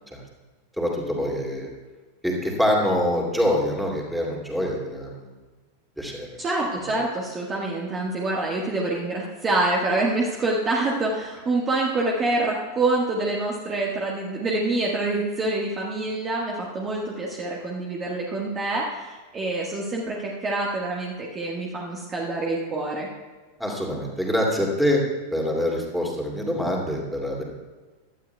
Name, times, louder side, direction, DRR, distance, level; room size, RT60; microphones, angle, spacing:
voice 1, 0.8-1.7 2.2-5.3 6.0-6.3 23.6-25.0 25.3-27.4, left 1 dB, ahead, -1 dB, 2.5 m, -25 dB
voice 2, 6.4-23.1, right 2 dB, 25° right, -2 dB, 1.5 m, -26 dB
16.5 x 12.0 x 2.3 m, 1.3 s
figure-of-eight pair, 90°, 0 cm